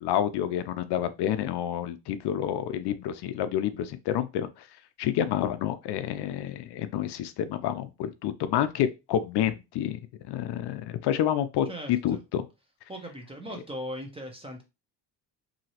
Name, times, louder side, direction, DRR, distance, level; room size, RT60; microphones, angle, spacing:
voice 1, 0.0-4.7 5.0-10.0 10.3-11.7 12.0-12.4, left 10 dB, 65° left, 0.5 m, -29 dB
voice 2, 11.7-12.2 12.9-14.6, equal, 15° right, 0.7 m, -38 dB
2.9 x 2.7 x 2.8 m
cardioid pair, 135°, 43 cm